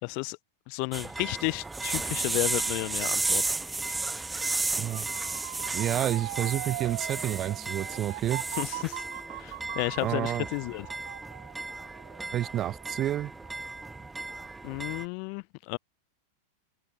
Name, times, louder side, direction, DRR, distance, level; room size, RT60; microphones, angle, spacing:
voice 1, 0.0-0.4 0.7-3.4 3.9-4.0 8.6-9.0 9.4-10.9 14.6-15.8, left 40 dB or more, 45° left, 1.0 m, -32 dB
sound 1, 0.9-15.0, right 3 dB, 10° right, 3.3 m, -34 dB
voice 2, 4.7-5.2 5.7-8.5 10.0-10.5 12.3-13.3, right 12 dB, 30° right, 1.8 m, -30 dB
Motor vehicle (road) / Siren, 4.9-13.8 14.2-14.7, right 18 dB, 50° right, 3.1 m, -41 dB
open air
figure-of-eight pair, 90°, 0 cm